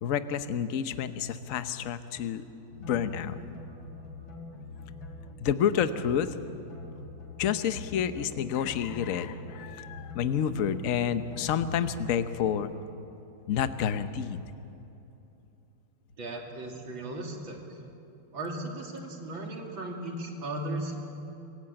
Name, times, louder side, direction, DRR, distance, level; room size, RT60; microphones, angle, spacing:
voice 1, 0.0-2.4 2.8-3.4 5.4-6.4 7.4-12.7 13.5-14.4, left 8 dB, 55° left, 11 dB, 1.1 m, -29 dB
sound 1, 2.7-12.7, left 3 dB, 85° left, 3.7 m, -44 dB
voice 2, 16.2-17.8 18.3-21.0, right 1 dB, 85° right, 1 dB, 3.4 m, -36 dB
25.5 x 16.0 x 8.7 m, 3.0 s
omnidirectional pair, 2.1 m